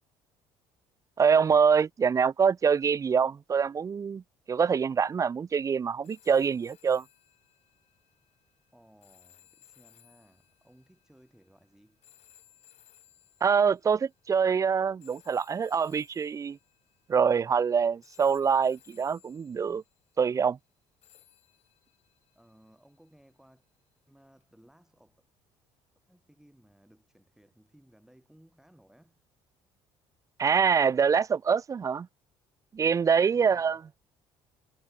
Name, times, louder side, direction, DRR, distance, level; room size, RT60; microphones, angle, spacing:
voice 1, 1.2-4.2 4.5-7.0 13.4-16.6 17.1-19.8 20.2-20.6 30.4-32.1 32.7-33.8, right 6 dB, 25° right, 0.4 m, -25 dB
sound 1, 6.0-14.2 15.0-17.7 18.0-20.1 21.0-23.3 24.4-24.5, left 12 dB, 65° left, 3.6 m, -62 dB
voice 2, 8.7-12.0 22.4-23.6 24.1-25.2 26.1-29.2 33.1-33.8, right 1 dB, 5° right, 5.4 m, -60 dB
supercardioid pair, 70°, 12 cm